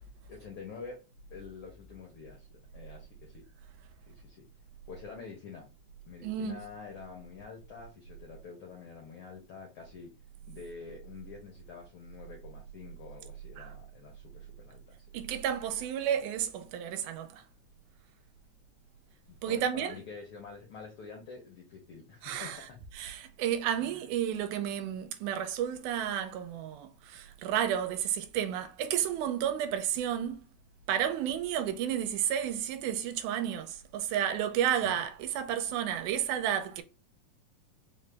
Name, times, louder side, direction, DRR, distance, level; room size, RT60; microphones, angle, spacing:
voice 1, 0.3-1.0 1.3-3.4 4.1-4.4 4.9-5.7 6.1-10.1 10.4-15.4 19.3-22.8 23.8-24.0 34.8-35.0, left 5 dB, 80° left, 1.2 m, -47 dB
voice 2, 6.2-6.6 13.6-13.7 15.1-17.4 19.4-19.9 22.2-22.6 23.0-30.4 30.9-36.8, right 9 dB, 85° right, 2.0 m, -31 dB
4.7 x 2.0 x 3.2 m
omnidirectional pair, 3.4 m